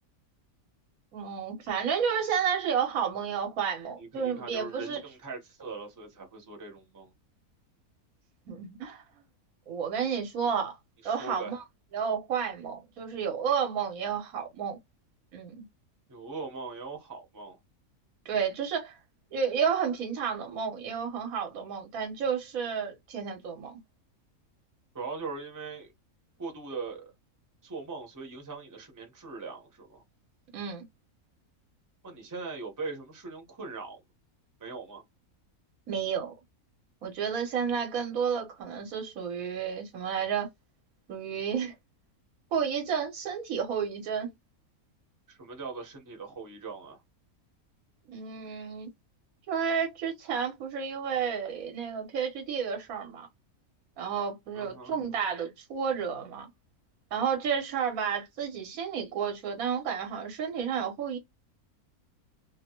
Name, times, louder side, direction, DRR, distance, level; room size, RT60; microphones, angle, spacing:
voice 1, 1.1-5.0 8.5-9.0 9.7-10.8 11.0-11.6 11.9-14.8 15.3-15.6 18.2-19.0 19.3-23.8 30.5-30.9 35.9-36.3 37.0-40.5 41.1-41.7 42.5-44.3 48.1-48.9 49.5-53.3 54.0-56.5 57.1-61.2, right 7 dB, 70° right, 1.4 m, -31 dB
voice 2, 4.0-7.1 11.0-11.6 16.1-17.6 24.9-25.9 26.4-27.1 27.6-30.0 32.0-34.0 34.6-35.0 45.3-47.0 54.5-55.0, right 4 dB, 15° right, 0.8 m, -40 dB
2.9 x 2.2 x 2.8 m
omnidirectional pair, 1.6 m